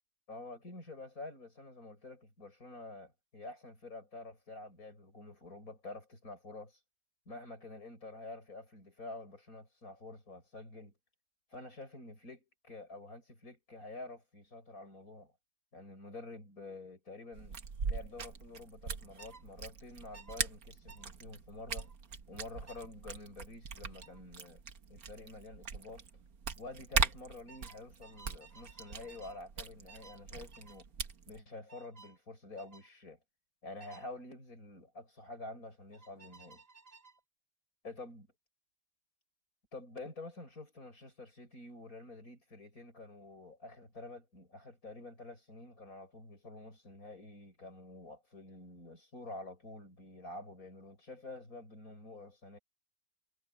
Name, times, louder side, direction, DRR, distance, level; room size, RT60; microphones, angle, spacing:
voice 1, 0.3-6.8 7.3-11.0 11.5-15.3 15.7-17.6 17.8-21.9 22.3-24.6 24.9-26.0 26.6-30.8 31.3-33.2 33.6-36.6 37.8-38.3 39.7-52.6, left 2 dB, 80° left, 7.8 m, -48 dB
sound 1, 17.3-31.4, right 5 dB, 85° right, 1.9 m, -40 dB
sound 2, 19.2-19.4 20.1-20.4 20.9-21.1 21.8-22.0 22.7-22.9 24.0-24.2 25.7-25.9 26.2-26.6 27.5-29.4 29.9-30.2 30.5-30.8 31.7-32.2 32.6-32.9 33.8-34.1 35.9-37.2, right 4 dB, 30° right, 1.3 m, -57 dB
omnidirectional pair, 1.5 m